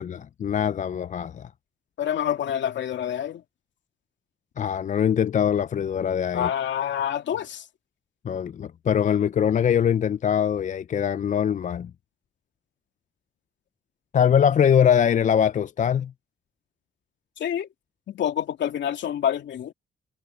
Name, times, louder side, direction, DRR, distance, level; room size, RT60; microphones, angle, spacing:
voice 1, 0.0-1.5 4.6-6.5 8.2-11.9 14.1-16.1, left 8 dB, 40° left, 0.4 m, -22 dB
voice 2, 2.0-3.4 6.3-7.7 17.4-17.7 18.1-19.7, left 9 dB, 65° left, 2.6 m, -27 dB
cardioid pair, 90°, 20 cm